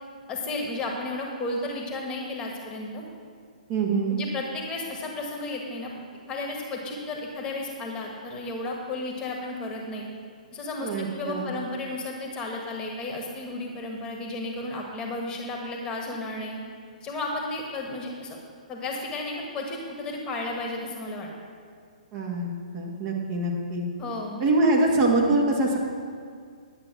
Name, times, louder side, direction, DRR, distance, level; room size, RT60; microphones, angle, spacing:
voice 1, 0.3-3.0 4.1-5.9 6.3-10.0 10.5-16.6 17.0-18.4 18.7-21.3 24.0-24.4, left 2 dB, 20° left, 0 dB, 1.6 m, -33 dB
voice 2, 3.7-4.2 10.8-11.5 22.1-23.9 24.4-25.8, right 2 dB, 30° right, -1 dB, 2.0 m, -24 dB
11.0 x 8.1 x 6.1 m, 2.1 s
figure-of-eight pair, 125°, 4 cm